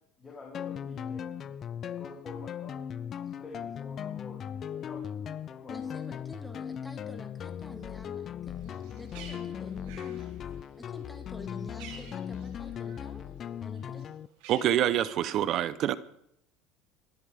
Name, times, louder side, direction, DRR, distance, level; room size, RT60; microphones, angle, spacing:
voice 1, 0.2-1.2 1.8-2.8 3.2-4.4 4.7-6.0, left 3 dB, 20° left, 3.3 m, -48 dB
sound 1, 0.5-14.3, left 8 dB, 35° left, 0.6 m, -38 dB
voice 2, 5.7-10.3 10.8-13.3 13.6-14.1, left 2 dB, 5° left, 2.4 m, -48 dB
Bird, 8.6-13.2 13.5-15.4, right 6 dB, 80° right, 5.1 m, -52 dB
voice 3, 14.5-16.0, right 11 dB, 50° right, 0.9 m, -26 dB
25.5 x 12.0 x 3.7 m
supercardioid pair, 125°, 0 cm